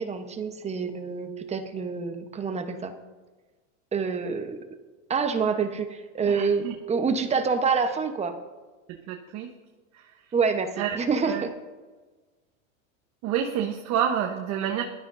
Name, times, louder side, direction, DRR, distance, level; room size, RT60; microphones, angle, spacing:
voice 1, 0.0-2.9 3.9-4.6 5.1-6.6 6.9-8.4 10.3-11.5, right 5 dB, 15° right, 7 dB, 1.0 m, -27 dB
voice 2, 6.3-6.7 8.9-9.5 9.9-10.2 10.8-11.0 11.2-11.4 13.2-14.8, right 9 dB, 40° right, 3 dB, 1.1 m, -29 dB
19.5 x 12.5 x 2.7 m, 1.3 s
supercardioid pair, 125°, 41 cm